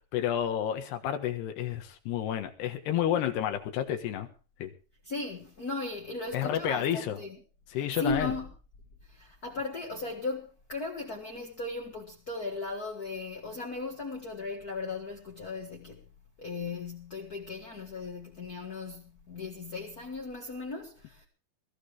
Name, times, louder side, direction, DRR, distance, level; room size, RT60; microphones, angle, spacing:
voice 1, 0.1-4.3 4.6-4.7 6.3-7.2 7.7-8.3, left 10 dB, 85° left, 3.6 m, -30 dB
voice 2, 5.0-7.4 7.7-8.5 9.1-16.0 16.4-21.3, left 3 dB, 45° left, 1.2 m, -37 dB
22.0 x 14.0 x 3.4 m
omnidirectional pair, 4.6 m